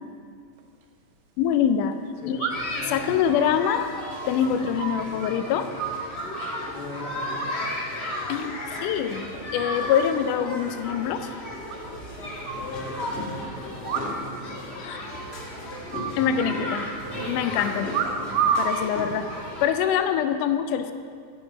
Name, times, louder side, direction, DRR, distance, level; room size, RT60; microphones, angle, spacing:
sound 1, 0.6-0.7 2.4-2.9 3.3-5.3 5.6-6.6 7.4-7.9 8.2-8.6 9.0-9.5 9.8-9.9 10.1-10.2 10.5-10.6 10.9-11.0 11.7-12.7 13.8-14.4 14.7-14.8 15.1-15.4 15.9-16.8 17.9-18.8 19.5-19.9, right 7 dB, 75° right, 2.2 m, -30 dB
voice 1, 1.4-2.0 2.3-2.5 2.9-3.9 4.3-5.7 8.3-8.5 8.8-11.3 14.8-15.0 16.2-16.9 17.3-17.9 18.6-19.4 19.6-20.9, left 8 dB, 85° left, 9 dB, 2.1 m, -24 dB
voice 2, 2.2-2.5 6.7-7.8 12.6-15.0, left 3 dB, 55° left, 1 dB, 1.9 m, -40 dB
sound 2, 2.5-19.7, left 1 dB, 30° left, 1.3 m, -34 dB
18.0 x 8.1 x 4.0 m, 2.2 s
omnidirectional pair, 3.6 m